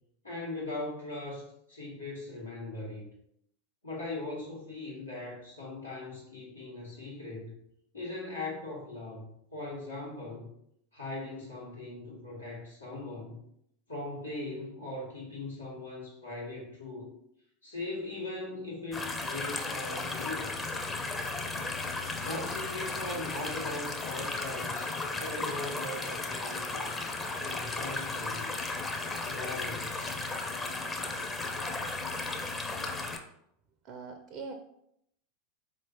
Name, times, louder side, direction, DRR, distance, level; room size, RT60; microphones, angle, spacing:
voice 1, 0.2-3.1 3.8-7.5 7.9-10.5 10.9-13.4 13.9-17.1 17.6-20.5 22.2-26.9 27.4-28.5 29.2-30.1, left 2 dB, 90° left, -6 dB, 1.6 m, -40 dB
sound 1, 18.9-33.2, left 3 dB, 20° left, 0.6 m, -35 dB
voice 2, 33.8-34.5, right 4 dB, 45° right, 5 dB, 0.4 m, -42 dB
4.4 x 2.9 x 2.9 m, 0.74 s
figure-of-eight pair, 85°, 0 cm